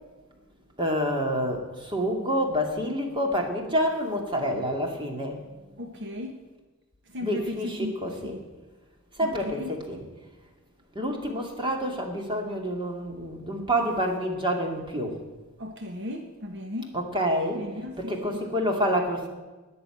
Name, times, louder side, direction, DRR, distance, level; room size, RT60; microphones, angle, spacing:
voice 1, 0.8-5.4 7.2-8.3 9.2-10.0 10.9-15.2 16.9-17.6 18.0-19.3, equal, 25° right, 2 dB, 2.4 m, -28 dB
voice 2, 5.6-6.4 7.1-8.4 9.2-9.8 15.6-16.9 17.6-18.4, left 2 dB, 55° right, 4 dB, 1.3 m, -36 dB
20.0 x 7.0 x 9.2 m, 1.2 s
head